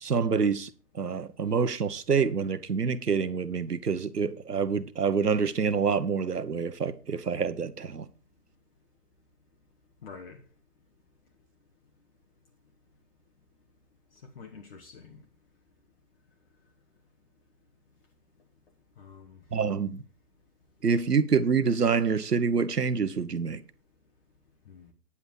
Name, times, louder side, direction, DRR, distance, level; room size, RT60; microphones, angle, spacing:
voice 1, 0.0-0.7 0.9-8.1 19.5-20.0 20.8-23.6, right 5 dB, 75° right, 1.2 m, -27 dB
voice 2, 10.0-10.4 14.3-15.2 19.0-19.4 24.7-24.9, left 5 dB, 40° left, 1.4 m, -47 dB
9.8 x 8.6 x 4.8 m
figure-of-eight pair, 135°, 48 cm